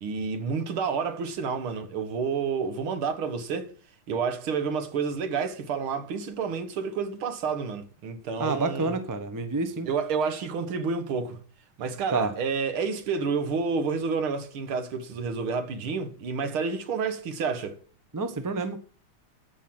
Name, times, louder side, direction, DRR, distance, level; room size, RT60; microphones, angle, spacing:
voice 1, 0.0-3.7 4.1-9.0 9.9-11.4 11.8-17.8, right 5 dB, 85° right, 2.2 m, -29 dB
voice 2, 8.4-9.9 12.1-12.3 18.1-18.8, right 3 dB, 25° right, 0.4 m, -28 dB
14.0 x 5.5 x 6.0 m
omnidirectional pair, 2.3 m